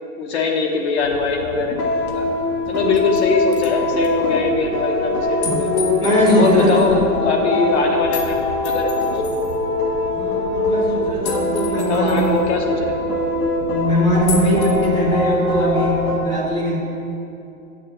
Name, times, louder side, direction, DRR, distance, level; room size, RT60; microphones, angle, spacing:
voice 1, 0.2-2.2 2.7-5.7 6.3-8.9 11.7-13.1, left 4 dB, 45° left, 1 dB, 1.2 m, -22 dB
sound 1, 1.0-16.2, left 1 dB, 80° left, 2.2 m, -22 dB
sound 2, 2.1-2.2 2.7-3.2 3.5-3.7 4.0-4.1 5.4-6.9 8.1-8.3 8.6-9.5 11.2-12.4 14.3-14.9, left 5 dB, 65° left, 1.4 m, -32 dB
voice 2, 5.7-6.7 7.4-7.5 10.2-12.3 13.7-16.8, left 1 dB, 10° left, -4 dB, 1.0 m, -20 dB
6.9 x 6.6 x 7.8 m, 2.7 s
hypercardioid pair, 165°, 46 cm